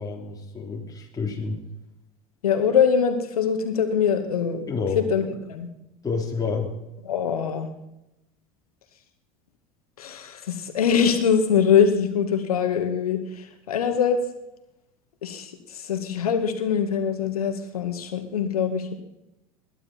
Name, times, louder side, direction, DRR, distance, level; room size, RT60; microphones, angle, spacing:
voice 1, 0.0-1.6 4.7-5.0 6.0-6.7, left 4 dB, 20° left, 0 dB, 3.3 m, -29 dB
voice 2, 2.4-5.7 7.1-7.7 10.0-14.2 15.2-18.9, left 7 dB, 80° left, 7 dB, 2.1 m, -23 dB
20.5 x 12.0 x 4.5 m, 0.89 s
hypercardioid pair, 85°, 18 cm